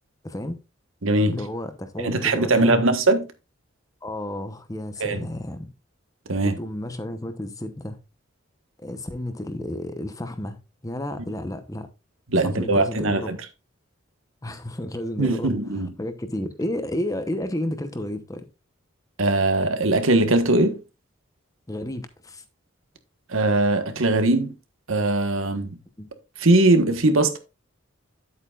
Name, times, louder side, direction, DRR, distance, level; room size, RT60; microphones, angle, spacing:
voice 1, 0.2-0.6 1.3-2.9 4.0-5.7 6.4-8.0 8.8-11.9 12.4-13.3 14.4-18.5 21.7-22.4 26.0-26.1, left 1 dB, 15° left, 0.9 m, -32 dB
voice 2, 1.0-1.3 2.0-3.3 5.0-5.2 6.3-6.6 12.3-13.4 15.2-15.9 19.2-20.8 23.3-24.5 24.9-25.7 26.4-27.4, right 2 dB, 80° right, 1.4 m, -20 dB
9.7 x 8.3 x 2.5 m
head